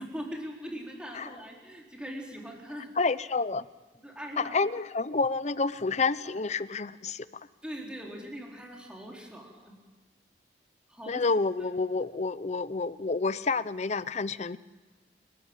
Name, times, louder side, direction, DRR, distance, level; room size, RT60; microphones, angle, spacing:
voice 1, 0.0-2.9 4.0-4.6 7.6-9.8 10.9-11.2 11.6-11.7, equal, 5° right, -1 dB, 4.3 m, -41 dB
voice 2, 3.0-3.6 4.4-7.3 11.1-14.6, left 4 dB, 40° left, 16 dB, 0.7 m, -29 dB
29.0 x 14.0 x 9.0 m, 1.3 s
head